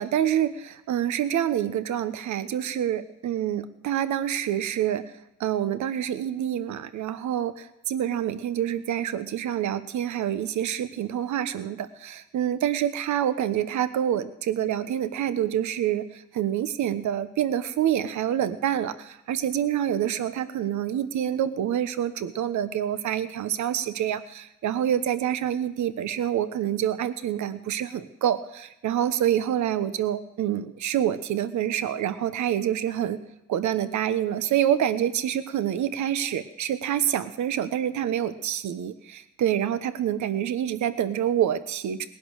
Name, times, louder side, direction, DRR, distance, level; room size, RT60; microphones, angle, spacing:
voice 1, 0.0-5.1 5.4-33.2 33.5-42.1, right 10 dB, 70° right, 12 dB, 1.1 m, -27 dB
19.0 x 11.0 x 6.4 m, 0.91 s
cardioid pair, 90°, 30 cm